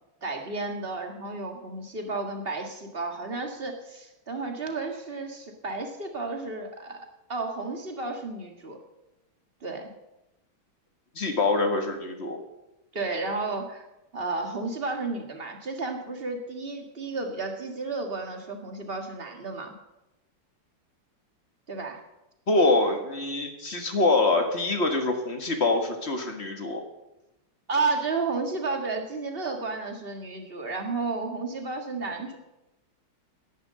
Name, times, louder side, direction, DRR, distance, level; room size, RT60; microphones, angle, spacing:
voice 1, 0.2-8.8 9.6-9.9 12.9-13.8 14.1-19.7 21.7-22.0 27.7-32.4, right 3 dB, 30° right, 3 dB, 1.8 m, -32 dB
voice 2, 11.1-12.4 22.5-26.8, left 2 dB, 35° left, 4 dB, 1.6 m, -25 dB
10.5 x 10.5 x 7.5 m, 0.95 s
omnidirectional pair, 2.3 m